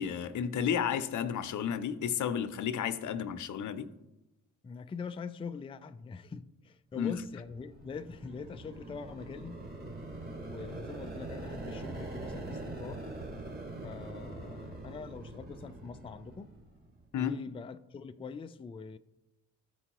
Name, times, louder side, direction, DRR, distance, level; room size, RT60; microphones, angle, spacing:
voice 1, 0.0-3.9 7.0-7.1 17.1-17.3, left 8 dB, 60° left, 0.7 m, -32 dB
voice 2, 4.6-9.6 10.4-13.1 13.8-16.5 17.1-19.0, left 5 dB, 15° left, 0.4 m, -43 dB
sound 1, 7.2-17.0, right 2 dB, 25° right, 2.1 m, -43 dB
13.5 x 4.5 x 3.0 m
supercardioid pair, 65°, 34 cm